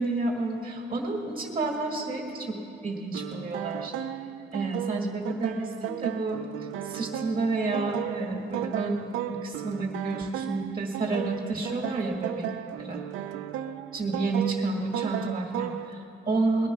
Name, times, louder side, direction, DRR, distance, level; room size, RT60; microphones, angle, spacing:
voice 1, 0.0-3.9 4.5-6.4 6.8-12.5 12.8-13.0 13.9-16.7, right 3 dB, 25° right, 2 dB, 1.7 m, -30 dB
sound 1, 3.1-15.9, right 11 dB, 85° right, 0.5 m, -35 dB
20.5 x 10.5 x 5.9 m, 2.8 s
cardioid pair, 90°, 20 cm